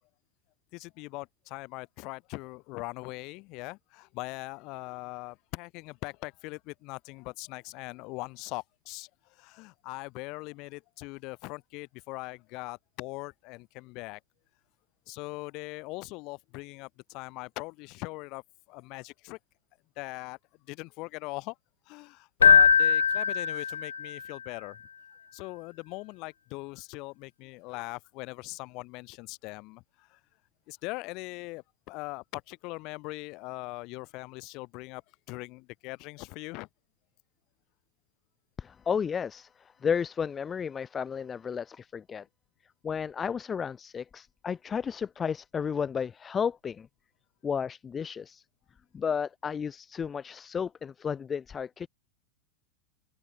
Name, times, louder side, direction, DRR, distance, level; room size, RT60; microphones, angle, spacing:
voice 1, 0.7-14.2 15.1-18.4 18.7-19.4 20.0-20.4 20.7-21.5 21.9-24.8 25.3-30.2 30.7-35.0 35.3-36.7, left 24 dB, 40° left, 3.4 m, -41 dB
Keyboard (musical), 22.4-24.2, left 7 dB, 70° left, 0.5 m, -21 dB
voice 2, 38.6-42.2 42.8-46.9 47.4-48.4 48.9-51.9, left 7 dB, 20° left, 0.6 m, -33 dB
open air
figure-of-eight pair, 90°, 0 cm